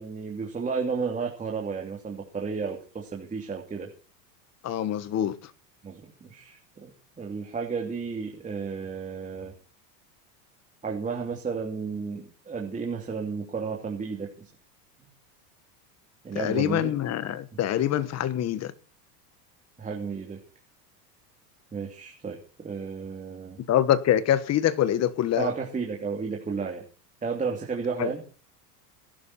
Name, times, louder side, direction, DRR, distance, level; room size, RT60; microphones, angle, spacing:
voice 1, 0.0-3.9 5.8-6.9 7.2-9.5 10.8-14.5 16.2-16.9 19.8-20.4 21.7-23.6 25.4-26.8 27.2-28.2, right 5 dB, 15° right, 2.9 m, -32 dB
voice 2, 4.6-5.4 16.3-18.7 23.7-25.5 28.0-28.1, left 11 dB, 35° left, 1.4 m, -25 dB
18.5 x 11.5 x 4.3 m
supercardioid pair, 125°, 47 cm